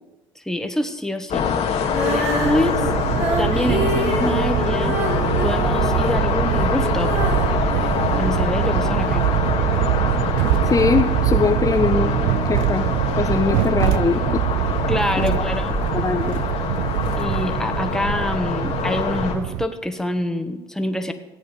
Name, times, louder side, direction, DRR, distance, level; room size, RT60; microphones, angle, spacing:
voice 1, 0.3-1.5 2.0-2.9 3.4-5.0 5.4-7.2 8.2-9.3 14.9-15.8 17.2-21.1, left 1 dB, 5° left, 6 dB, 1.5 m, -26 dB
sound 1, 1.3-19.3, left 7 dB, 60° left, 1.8 m, -25 dB
Female singing, 1.8-8.9 9.5-9.6, right 3 dB, 60° right, 3.9 m, -28 dB
sound 2, 2.4-19.7, right 15 dB, 80° right, 0.5 m, -23 dB
voice 2, 10.7-12.1 12.4-12.9 13.2-14.4 15.2-15.4 15.9-16.4, left 5 dB, 30° left, 5 dB, 1.0 m, -21 dB
16.5 x 8.7 x 5.2 m, 1.1 s
hypercardioid pair, 60°, 12 cm